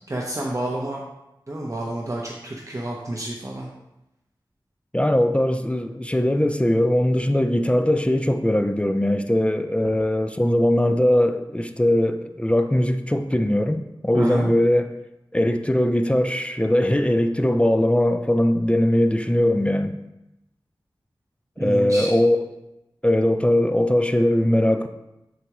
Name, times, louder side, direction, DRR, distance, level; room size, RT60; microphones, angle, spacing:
voice 1, 0.1-1.0 1.5-3.7 14.1-14.5 21.6-22.1, right 1 dB, 35° right, 0.8 m, -29 dB
voice 2, 4.9-14.9 15.3-20.0 21.6-22.5 23.0-24.9, left 1 dB, 15° left, 0.4 m, -20 dB
7.8 x 4.7 x 3.0 m
wide cardioid pair, 50°, 9 cm